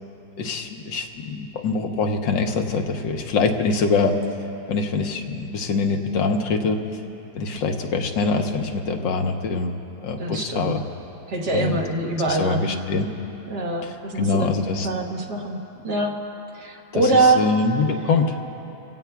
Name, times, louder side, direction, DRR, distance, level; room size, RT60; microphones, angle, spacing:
voice 1, 0.4-4.1 4.7-6.8 7.3-9.7 10.0-10.8 11.5-11.7 12.3-13.1 14.2-14.9 17.4-18.4, left 4 dB, 75° left, 4 dB, 1.6 m, -24 dB
voice 2, 10.2-10.8 11.3-12.8 13.5-15.6 15.8-16.2 16.5-17.5 17.9-18.0, right 2 dB, 60° right, 0 dB, 1.8 m, -24 dB
29.5 x 16.5 x 2.3 m, 2.9 s
omnidirectional pair, 2.0 m